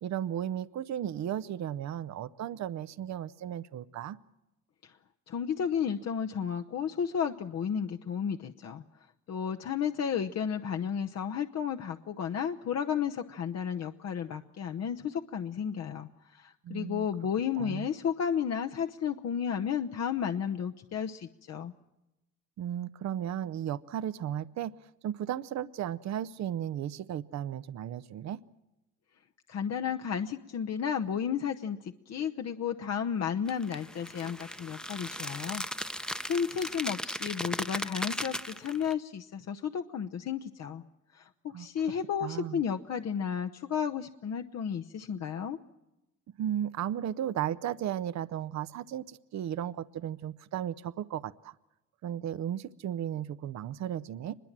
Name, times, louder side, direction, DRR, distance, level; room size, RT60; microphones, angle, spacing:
voice 1, 0.0-4.2 16.6-17.1 17.6-17.9 22.6-24.7 25.0-28.4 41.5-41.7 42.2-42.6 46.4-51.5 52.0-54.3, right 10 dB, 65° right, 16 dB, 0.7 m, -35 dB
voice 2, 5.3-8.8 9.3-21.7 29.5-35.6 35.9-40.8 41.1-45.6, left 7 dB, 60° left, 5 dB, 1.0 m, -33 dB
sound 1, 33.5-38.9, equal, 5° left, 0.8 m, -37 dB
24.0 x 21.5 x 7.4 m, 0.95 s
cardioid pair, 90°, 30 cm